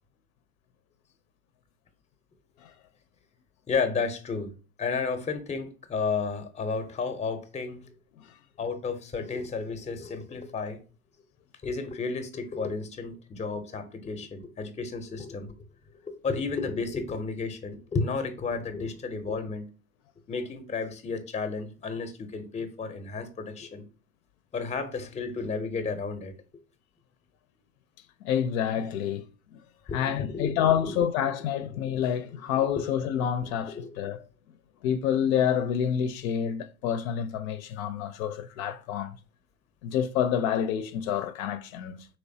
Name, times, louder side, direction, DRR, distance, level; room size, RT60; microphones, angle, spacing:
voice 1, 3.7-4.5 4.8-7.9 8.6-10.8 11.6-15.6 16.0-19.7 20.3-23.8 24.5-26.3 29.9-30.9 31.8-31.9 33.7-33.9, left 4 dB, 15° left, 0.6 m, -32 dB
voice 2, 28.2-29.2 29.5-29.6 29.9-34.2 34.8-39.2 39.8-42.1, left 9 dB, 75° left, 0.5 m, -28 dB
3.2 x 3.0 x 2.6 m
hypercardioid pair, 85°, 42 cm